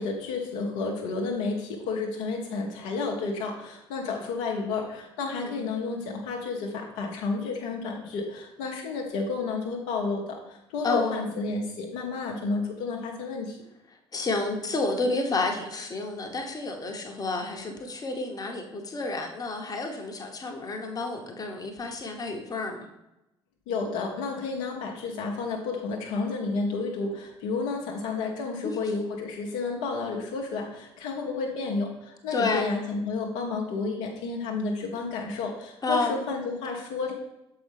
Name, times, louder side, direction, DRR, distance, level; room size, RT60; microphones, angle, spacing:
voice 1, 0.0-13.6 23.7-37.1, left 4 dB, 60° left, 0 dB, 0.8 m, -31 dB
voice 2, 10.8-11.2 14.1-22.9 28.6-28.8 32.3-32.7 35.8-36.2, left 3 dB, 30° left, 2 dB, 1.0 m, -30 dB
7.0 x 4.6 x 3.4 m, 0.91 s
figure-of-eight pair, 50°, 14 cm